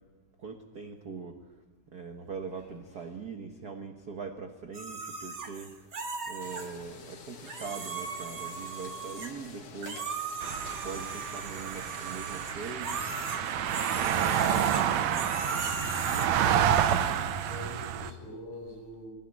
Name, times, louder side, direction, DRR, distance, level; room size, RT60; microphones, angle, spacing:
voice 1, 0.4-1.4 1.9-5.8 6.3-10.2 10.8-13.0 14.0-15.4, right 5 dB, 55° right, 5 dB, 1.1 m, -42 dB
sound 1, 4.7-6.7 7.4-9.5 9.8-16.3, right 4 dB, 35° right, 1.9 m, -38 dB
sound 2, 6.4-14.1, left 5 dB, 75° left, 3.7 m, -49 dB
sound 3, 10.4-18.1, right 9 dB, 70° right, 2.1 m, -29 dB
voice 2, 16.8-19.1, left 1 dB, 60° left, 0 dB, 8.8 m, -44 dB
20.0 x 16.5 x 9.7 m, 1.2 s
omnidirectional pair, 3.5 m